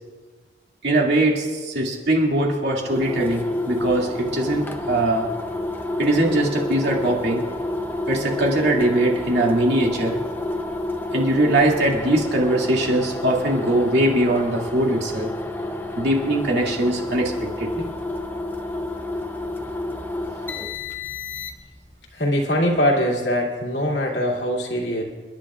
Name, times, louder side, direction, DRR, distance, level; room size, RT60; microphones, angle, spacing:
voice 1, 0.8-5.3 6.0-7.4 8.1-10.2 11.1-15.3 16.0-17.9, right 1 dB, 80° right, -1 dB, 2.5 m, -21 dB
sound 1, 2.8-21.8, left 2 dB, 10° left, 0.7 m, -29 dB
voice 2, 22.1-25.0, equal, 85° left, -1 dB, 2.5 m, -22 dB
29.5 x 11.0 x 2.5 m, 1.4 s
head